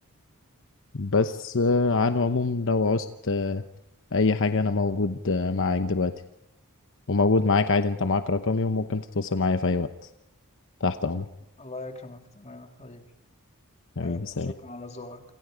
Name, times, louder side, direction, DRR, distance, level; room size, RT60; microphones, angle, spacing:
voice 1, 0.9-3.6 4.1-6.1 7.1-10.1 10.8-11.3 14.0-14.5, left 3 dB, 60° left, 9 dB, 0.9 m, -24 dB
voice 2, 11.6-13.1 14.0-15.2, left 2 dB, 30° left, 5 dB, 2.7 m, -41 dB
28.5 x 27.5 x 5.1 m, 0.84 s
head